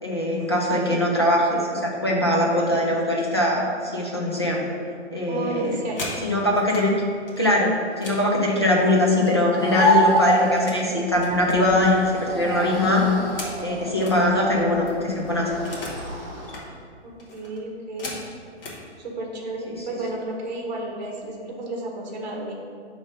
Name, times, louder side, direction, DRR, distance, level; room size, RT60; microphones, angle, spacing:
voice 1, 0.0-4.6 5.1-5.8 6.2-6.9 7.4-13.1 13.6-15.5 19.7-19.8, left 1 dB, 25° left, -3 dB, 0.4 m, -22 dB
voice 2, 5.3-6.1 17.0-18.1 19.0-22.5, right 2 dB, 40° right, -1 dB, 1.0 m, -32 dB
sound 1, 5.6-6.9 7.3-9.6 9.9-10.9 11.2-14.2 14.6-14.7 14.9-16.1 16.4-16.7 17.2-18.8 19.6-19.8 20.2-20.5 20.8-21.3, left 2 dB, 50° left, 1.4 m, -39 dB
sound 2, 9.6-16.5, right 1 dB, 20° right, 1.2 m, -26 dB
6.3 x 3.2 x 5.0 m, 2.1 s
hypercardioid pair, 175°, 34 cm